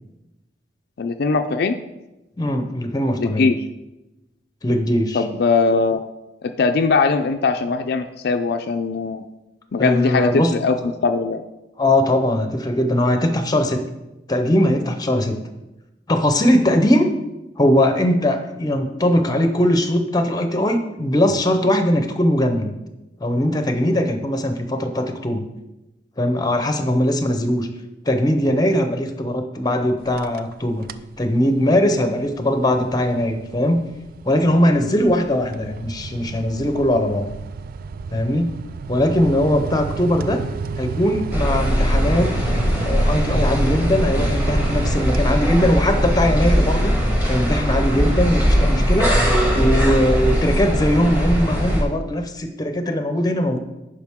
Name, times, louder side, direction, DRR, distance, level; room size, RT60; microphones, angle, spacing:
voice 1, 1.0-1.8 3.2-3.6 5.1-6.0 6.4-9.2 9.7-10.8 11.0-11.4, left 4 dB, 60° left, 6 dB, 0.4 m, -20 dB
voice 2, 2.4-3.5 4.6-5.2 9.8-10.5 11.8-13.8 14.3-15.3 16.1-17.1 17.6-22.7 23.2-25.5 26.2-27.7 28.1-30.9 31.2-33.8 34.2-37.3 38.1-38.5 38.9-40.4 40.8-42.3 42.8-46.9 47.3-49.1 49.5-53.6, left 1 dB, 20° left, 7 dB, 0.7 m, -20 dB
sound 1, 30.0-30.5 30.8-31.2 31.6-45.9, right 5 dB, 50° right, 0.3 m, -31 dB
sound 2, 41.3-51.8, equal, 10° right, 1.6 m, -20 dB
10.5 x 5.0 x 3.6 m, 0.98 s
head